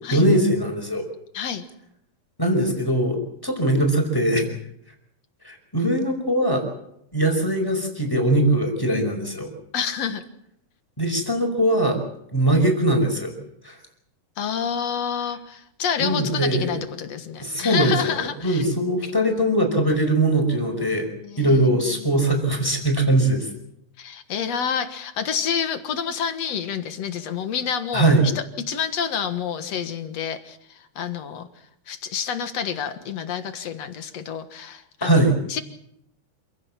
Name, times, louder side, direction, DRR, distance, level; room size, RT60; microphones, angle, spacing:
voice 1, 0.1-1.1 2.4-3.2 3.4-4.4 5.4-6.6 7.1-9.5 11.0-12.0 12.3-13.3 13.6-13.8 16.0-16.7 17.4-21.1 21.4-23.5 27.9-28.2 35.0-35.3, right 1 dB, 5° left, 4 dB, 4.9 m, -21 dB
voice 2, 1.3-1.7 9.7-10.2 14.4-18.6 21.2-22.1 24.0-28.3 28.7-31.5 31.9-35.2 35.5-35.6, left 7 dB, 60° left, 9 dB, 2.4 m, -28 dB
27.5 x 16.0 x 7.4 m, 0.77 s
omnidirectional pair, 3.7 m